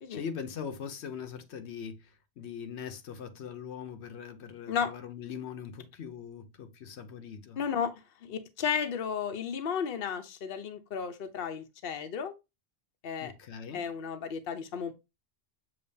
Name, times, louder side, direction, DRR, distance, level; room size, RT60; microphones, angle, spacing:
voice 1, 0.1-7.6 13.2-13.9, left 7 dB, 85° left, 1.0 m, -41 dB
voice 2, 7.6-7.9 8.2-12.3 13.0-13.3 13.7-14.9, left 7 dB, 60° left, 0.9 m, -33 dB
6.9 x 2.9 x 2.7 m
omnidirectional pair, 1.1 m